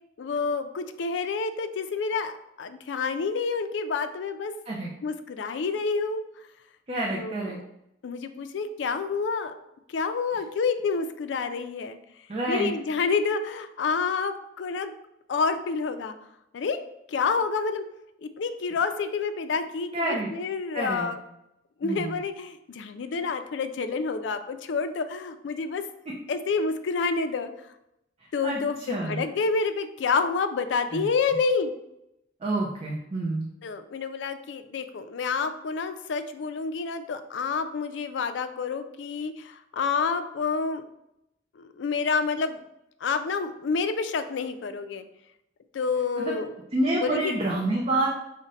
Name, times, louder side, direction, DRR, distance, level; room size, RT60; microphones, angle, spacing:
voice 1, 0.2-4.5 5.0-6.2 7.1-7.6 8.0-9.5 9.9-12.0 12.5-14.9 15.3-16.1 16.5-16.8 17.1-17.8 18.2-21.2 21.8-25.8 26.3-27.5 28.3-31.7 33.6-40.9 41.6-42.6 43.0-45.1 45.7-46.5 46.9-47.3, left 4 dB, 75° left, 9 dB, 0.4 m, -28 dB
voice 2, 6.9-7.6 12.3-12.7 19.9-20.3 20.7-21.1 21.8-22.2 28.4-28.6 28.9-29.2 30.9-31.0 32.4-33.5 46.2-46.3 46.7-48.1, right 2 dB, 35° right, -3 dB, 0.6 m, -28 dB
5.0 x 2.1 x 4.0 m, 0.83 s
head